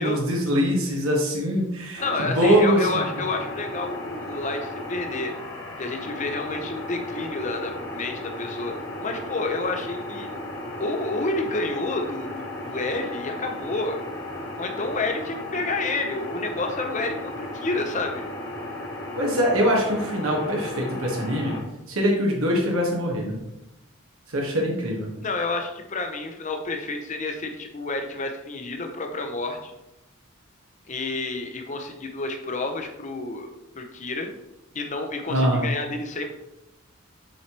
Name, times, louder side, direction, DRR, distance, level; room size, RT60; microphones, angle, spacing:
voice 1, 0.0-3.0 19.2-21.6 21.9-23.4 24.3-25.1 35.3-35.7, equal, 85° right, -1 dB, 1.2 m, -23 dB
sound 1, 2.0-21.6, left 1 dB, 65° left, 1.8 m, -35 dB
voice 2, 2.0-5.3 5.8-8.7 9.0-10.3 10.8-14.0 14.6-18.3 25.2-29.7 30.9-34.3 34.7-36.3, left 2 dB, 35° left, 5 dB, 0.7 m, -29 dB
7.3 x 4.7 x 3.0 m, 0.93 s
head